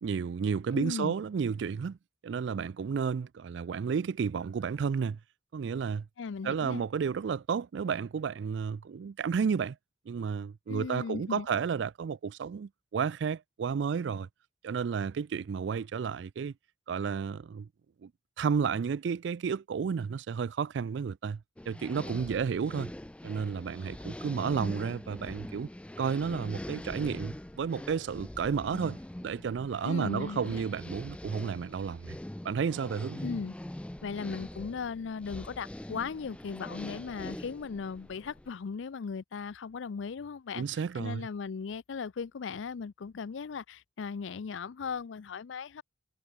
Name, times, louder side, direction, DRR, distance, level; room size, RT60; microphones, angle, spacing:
voice 1, 0.0-2.0 2.2-5.2 5.5-6.1 6.4-9.8 10.1-14.3 14.6-16.5 16.9-17.7 18.0-18.1 18.4-21.4 21.7-22.9 23.2-25.7 26.0-29.0 29.2-32.1 32.4-33.2 40.6-41.3, right 6 dB, 70° right, 0.4 m, -32 dB
voice 2, 0.7-1.1 6.2-6.8 10.7-11.5 29.8-30.6 33.2-33.5 34.0-40.6 40.9-45.8, left 5 dB, 85° left, 0.5 m, -37 dB
sound 1, 21.6-38.5, left 1 dB, 5° left, 0.4 m, -43 dB
head